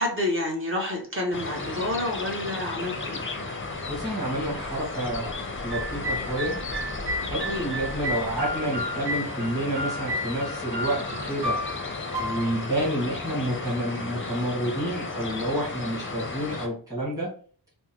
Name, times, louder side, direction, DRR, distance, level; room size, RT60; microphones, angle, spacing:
voice 1, 0.0-3.2 7.4-7.7, left 1 dB, 30° right, -1 dB, 1.1 m, -29 dB
sound 1, 1.3-16.7, left 3 dB, 30° left, 0.6 m, -34 dB
voice 2, 3.9-5.3 5.6-6.6 7.2-11.6 12.2-17.3, right 1 dB, 10° right, -6 dB, 1.6 m, -29 dB
sound 2, 5.7-13.7, equal, 65° right, 1.0 m, -33 dB
3.6 x 2.1 x 2.8 m, 0.43 s
wide cardioid pair, 70°, 42 cm